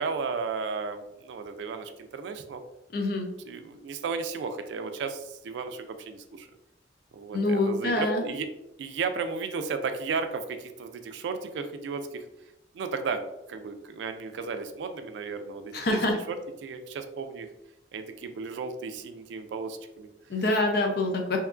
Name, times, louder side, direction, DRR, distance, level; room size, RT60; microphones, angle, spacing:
voice 1, 0.0-2.6 3.4-6.5 7.1-8.5 8.8-12.2 12.7-13.2 13.5-17.5 17.9-20.4 21.0-21.4, right 5 dB, 75° right, 8 dB, 0.3 m, -34 dB
voice 2, 2.9-3.3 7.3-8.2 15.7-16.1 20.3-21.4, left 2 dB, 55° left, 2 dB, 0.5 m, -25 dB
2.8 x 2.3 x 2.4 m, 0.89 s
head